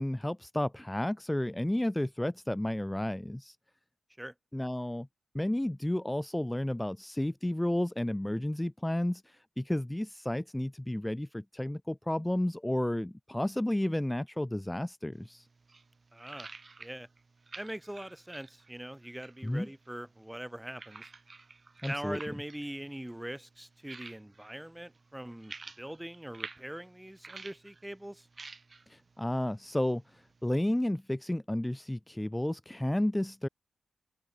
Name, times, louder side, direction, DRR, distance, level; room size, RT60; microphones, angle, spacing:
voice 1, 0.0-3.6 4.5-5.1 5.3-15.5 19.4-19.7 21.8-22.2 28.9-33.5, left 1 dB, 10° left, 3.0 m, -32 dB
sound 1, 15.1-30.9, right 3 dB, 45° right, 4.8 m, -52 dB
voice 2, 16.1-16.5 16.8-17.1 17.6-21.1 21.9-28.3, right 1 dB, 10° right, 4.9 m, -42 dB
open air
supercardioid pair, 40°, 0 cm